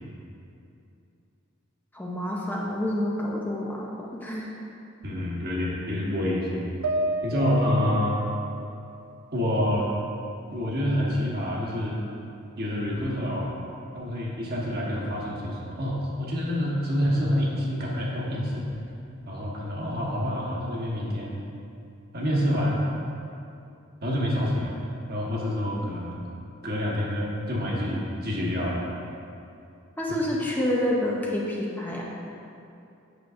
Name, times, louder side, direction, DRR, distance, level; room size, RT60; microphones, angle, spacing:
voice 1, 1.9-4.5 30.0-32.0, left 1 dB, 10° left, -3 dB, 0.5 m, -28 dB
voice 2, 5.0-6.7 7.2-8.2 9.3-9.9 10.5-12.0 12.6-13.5 13.9-18.6 19.3-21.3 22.1-22.8 24.0-24.7 25.1-26.1 26.6-28.8, left 1 dB, 50° right, -4 dB, 1.2 m, -27 dB
sound 1, 6.8-10.2 10.6-11.7, right 1 dB, 85° right, 0.4 m, -33 dB
8.1 x 6.1 x 2.5 m, 2.7 s
head